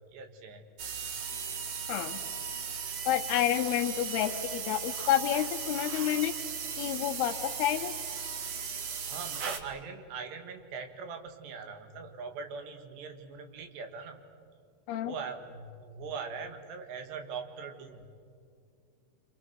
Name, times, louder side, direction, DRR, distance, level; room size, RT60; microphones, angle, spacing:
voice 1, 0.1-0.7 9.1-14.2 15.0-18.1, right 5 dB, 80° right, 5 dB, 4.0 m, -41 dB
sound 1, 0.8-9.6, right 6 dB, 65° right, 1.7 m, -37 dB
voice 2, 1.9-2.2 3.1-6.3 6.8-7.9 14.9-15.1, left 12 dB, 80° left, 4 dB, 2.8 m, -29 dB
28.0 x 26.0 x 6.4 m, 2.2 s
omnidirectional pair, 4.9 m